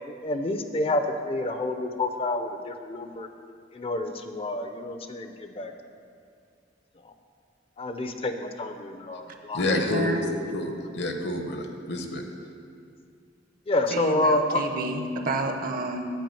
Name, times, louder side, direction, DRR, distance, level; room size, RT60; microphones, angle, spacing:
voice 1, 0.0-3.3 3.7-5.7 7.0-7.1 7.8-9.6 13.7-14.7, left 2 dB, 30° left, 7 dB, 0.5 m, -28 dB
voice 2, 9.5-12.2, left 1 dB, 65° left, 4 dB, 0.9 m, -29 dB
voice 3, 13.9-16.0, right 2 dB, 55° right, 5 dB, 0.8 m, -29 dB
9.1 x 4.9 x 7.7 m, 2.3 s
head